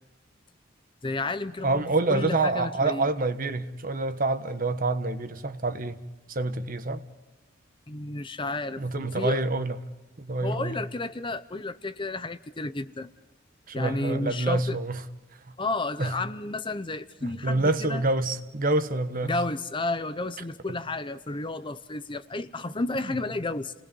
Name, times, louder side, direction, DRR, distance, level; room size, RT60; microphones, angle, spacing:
voice 1, 1.0-3.1 7.9-9.4 10.4-13.1 13.7-14.8 15.6-18.0 19.2-23.7, left 2 dB, 25° left, 0.8 m, -32 dB
voice 2, 1.6-6.0 6.3-7.0 8.8-9.8 10.2-10.7 13.7-15.0 16.0-16.1 17.2-19.3 23.0-23.1, right 2 dB, 45° right, 1.2 m, -27 dB
30.0 x 19.5 x 5.5 m
head